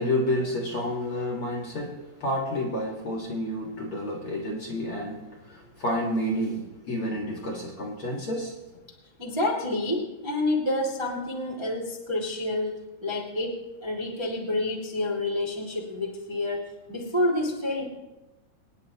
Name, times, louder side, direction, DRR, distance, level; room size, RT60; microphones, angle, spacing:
voice 1, 0.0-8.6, left 1 dB, 45° left, -1 dB, 1.9 m, -30 dB
voice 2, 9.2-17.8, left 1 dB, 10° right, -1 dB, 1.1 m, -29 dB
25.5 x 10.0 x 2.9 m, 1.1 s
omnidirectional pair, 4.5 m